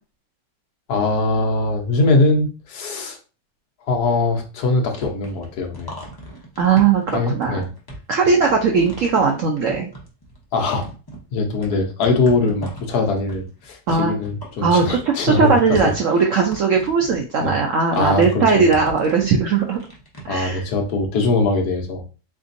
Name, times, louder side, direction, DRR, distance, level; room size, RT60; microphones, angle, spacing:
voice 1, 0.9-3.2 3.9-6.0 7.1-7.7 10.5-10.9 11.3-15.9 17.4-17.6 17.9-18.7 20.3-22.0, left 3 dB, 65° left, 2 dB, 1.3 m, -21 dB
sound 1, 5.0-10.5 10.8-20.2, right 1 dB, 25° left, 0.4 m, -38 dB
voice 2, 6.6-7.6 8.1-9.9 13.9-14.1 14.6-19.8 20.2-20.6, right 5 dB, 75° right, 2 dB, 0.7 m, -18 dB
3.8 x 3.4 x 2.6 m, 0.34 s
omnidirectional pair, 1.9 m